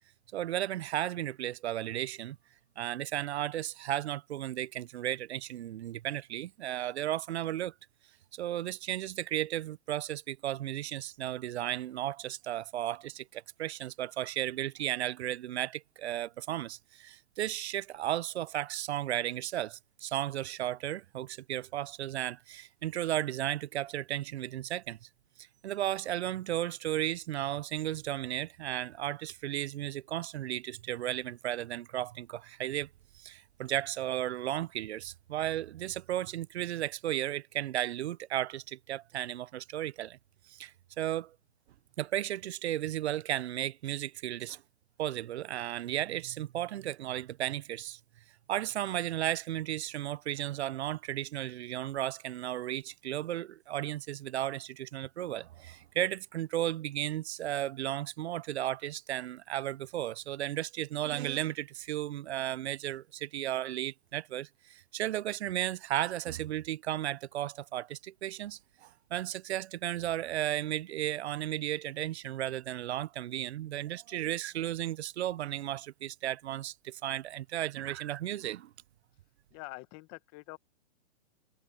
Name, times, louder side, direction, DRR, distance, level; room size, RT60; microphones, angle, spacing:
voice 1, 0.3-2.4 2.8-7.7 8.3-25.0 25.6-32.9 33.1-40.2 40.5-41.3 42.0-44.6 45.0-48.0 48.5-78.7, right 13 dB, 70° right, 0.6 m, -34 dB
voice 2, 79.5-80.6, left 23 dB, 30° left, 1.2 m, -45 dB
hypercardioid pair, 150°, 34 cm